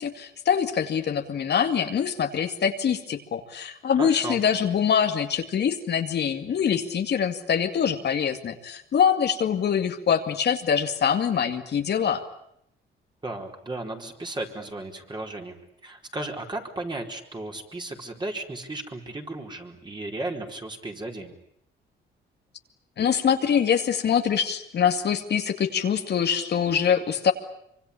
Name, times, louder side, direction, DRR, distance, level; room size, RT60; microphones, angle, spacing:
voice 1, 0.0-12.2 23.0-27.3, left 7 dB, 55° left, 6 dB, 2.3 m, -24 dB
voice 2, 4.0-4.4 13.2-15.6 15.8-21.3, right 2 dB, 20° right, 2 dB, 4.5 m, -35 dB
25.0 x 24.5 x 8.6 m, 0.73 s
cardioid pair, 90°, 20 cm